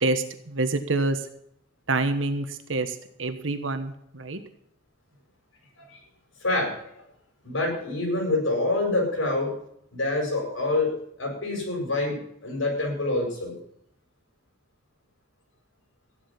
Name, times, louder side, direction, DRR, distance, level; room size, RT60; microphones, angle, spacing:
voice 1, 0.0-1.3 1.9-4.4, right 2 dB, 75° right, 9 dB, 1.3 m, -27 dB
voice 2, 6.4-6.9 7.4-9.5 9.9-13.6, left 2 dB, 75° left, 0 dB, 7.8 m, -26 dB
15.0 x 11.0 x 5.8 m, 0.71 s
head